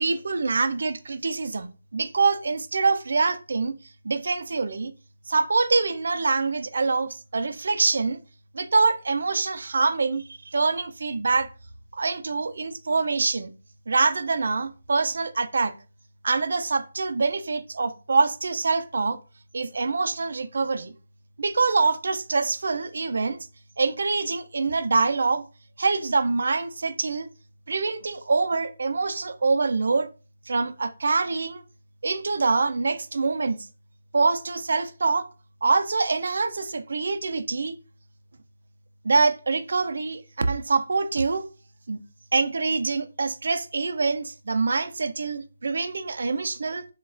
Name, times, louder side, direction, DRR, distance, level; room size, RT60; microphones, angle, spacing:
voice 1, 0.0-3.8 4.0-4.9 5.3-8.2 8.5-11.5 11.9-13.5 13.9-15.7 16.2-19.2 19.5-20.9 21.4-23.4 23.8-25.5 25.8-27.3 27.7-30.1 30.5-31.6 32.0-33.6 34.1-35.3 35.6-37.7 39.0-41.5 41.9-42.0 42.3-46.9, right 4 dB, 65° right, 0.4 m, -25 dB
3.9 x 2.3 x 2.5 m
hypercardioid pair, 170°, 0 cm